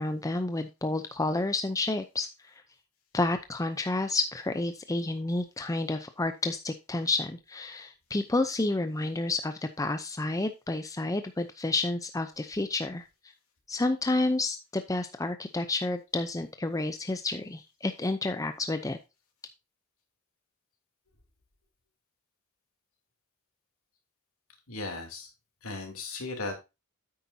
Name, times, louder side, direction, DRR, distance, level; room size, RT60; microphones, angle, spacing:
voice 1, 0.0-2.3 3.1-13.0 13.7-19.0, left 2 dB, 15° left, 8 dB, 0.6 m, -30 dB
voice 2, 24.7-25.3 25.6-26.6, left 3 dB, 70° left, 2 dB, 3.0 m, -36 dB
9.4 x 8.6 x 2.7 m, 0.25 s
head